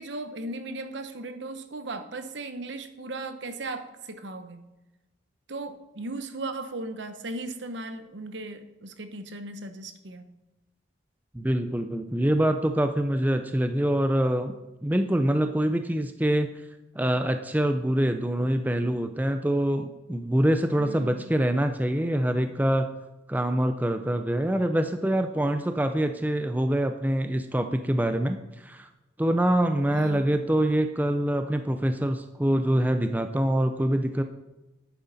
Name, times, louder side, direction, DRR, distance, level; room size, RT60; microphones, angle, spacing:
voice 1, 0.0-4.6 5.5-10.3 20.8-21.3 29.9-30.4, right 2 dB, 65° right, 9 dB, 0.9 m, -37 dB
voice 2, 11.3-14.5 14.8-16.5 17.0-22.9 23.3-28.4 28.6-28.9 29.2-34.2, right 1 dB, 10° right, 7 dB, 0.4 m, -25 dB
11.0 x 9.2 x 4.1 m, 1.0 s
head